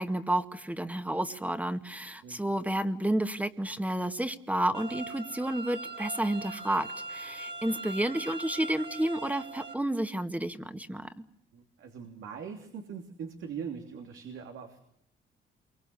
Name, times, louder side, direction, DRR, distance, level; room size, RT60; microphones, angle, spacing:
voice 1, 0.0-11.1, right 1 dB, 5° right, 9 dB, 1.9 m, -31 dB
sound 1, 4.7-9.7, right 3 dB, 60° right, 3.8 m, -41 dB
voice 2, 11.5-14.8, right 7 dB, 80° right, 3 dB, 3.2 m, -41 dB
28.0 x 24.5 x 7.0 m, 0.75 s
cardioid pair, 90°, 20 cm